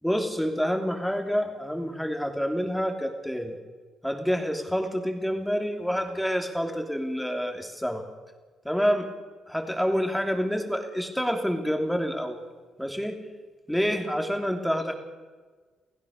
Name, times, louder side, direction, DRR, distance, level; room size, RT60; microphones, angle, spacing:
voice 1, 0.0-3.6 4.0-8.1 8.7-9.1 9.5-12.4 12.8-13.2 13.7-15.0, equal, ahead, 4 dB, 3.5 m, -28 dB
29.5 x 16.0 x 6.7 m, 1.4 s
cardioid pair, 90°, 0 cm